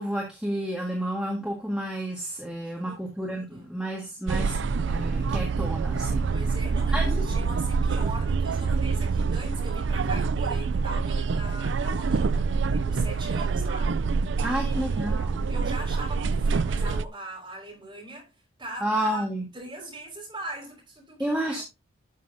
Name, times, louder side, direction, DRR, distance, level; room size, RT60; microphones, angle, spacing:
voice 1, 0.0-6.2 6.9-7.2 14.4-15.5 18.8-19.4 21.2-21.6, right 1 dB, 5° right, 1.7 m, -31 dB
voice 2, 2.7-3.7 6.3-18.3 18.6-19.3 19.5-21.6, right 1 dB, 20° right, 5.1 m, -41 dB
sound 1, 4.3-17.1, right 4 dB, 60° right, 0.4 m, -26 dB
12.5 x 6.3 x 2.7 m
head